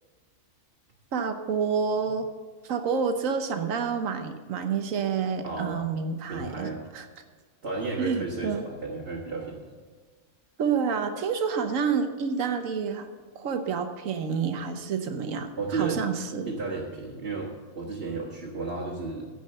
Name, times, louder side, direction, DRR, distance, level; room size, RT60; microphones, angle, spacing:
voice 1, 1.1-2.3 2.6-7.1 8.0-8.6 10.6-13.1 13.3-16.5, right 6 dB, 75° right, 7 dB, 1.4 m, -28 dB
voice 2, 5.4-5.9 6.3-6.8 7.6-9.7 15.6-16.0 16.5-19.3, right 3 dB, 45° right, -5 dB, 1.9 m, -33 dB
15.5 x 5.5 x 6.6 m, 1.5 s
omnidirectional pair, 1.4 m